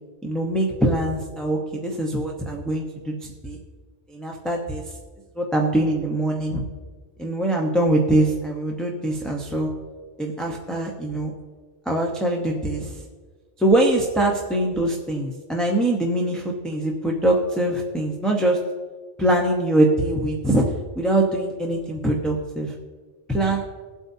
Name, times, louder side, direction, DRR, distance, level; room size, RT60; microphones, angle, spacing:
voice 1, 0.2-3.6 4.1-4.8 5.4-6.6 7.2-9.7 10.2-11.3 11.9-13.0 13.6-18.6 19.2-20.6 21.0-22.7 23.3-23.7, right 1 dB, ahead, -2 dB, 0.8 m, -23 dB
21.0 x 8.2 x 2.8 m, 1.5 s
omnidirectional pair, 1.3 m